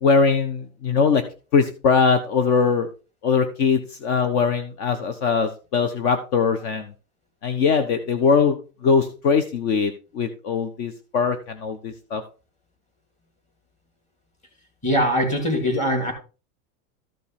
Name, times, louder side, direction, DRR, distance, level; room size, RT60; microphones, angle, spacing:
voice 1, 0.0-1.2 1.5-2.9 3.2-6.9 7.4-12.2, left 5 dB, 55° left, 8 dB, 1.3 m, -21 dB
voice 2, 14.8-16.1, equal, 15° left, 3 dB, 2.7 m, -21 dB
13.5 x 5.3 x 4.4 m, 0.34 s
supercardioid pair, 170°, 39 cm